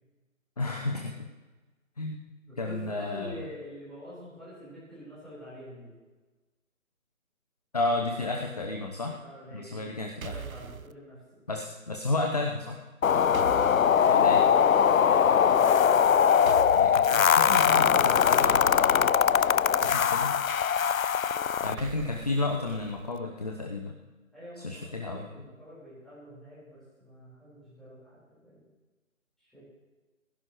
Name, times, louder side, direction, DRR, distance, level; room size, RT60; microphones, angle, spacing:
voice 1, 0.6-1.3 2.0-2.2 2.6-3.3 7.7-9.2 9.5-10.3 11.5-12.8 14.1-14.4 16.7-18.6 19.8-20.3 21.6-24.0 24.6-25.3, left 2 dB, 30° left, 3 dB, 0.9 m, -32 dB
voice 2, 2.5-5.9 9.2-9.9 10.2-11.2 21.3-21.8 24.3-28.6 29.4-29.6, equal, ahead, -12 dB, 4.2 m, -46 dB
sound 1, 10.2-10.9 13.3-14.0 16.4-17.2 18.4-19.8 21.8-23.2, right 6 dB, 85° right, 0.7 m, -41 dB
sound 2, 13.0-21.8, left 8 dB, 75° left, 0.5 m, -22 dB
16.0 x 16.0 x 3.1 m, 1.2 s
figure-of-eight pair, 150°, 41 cm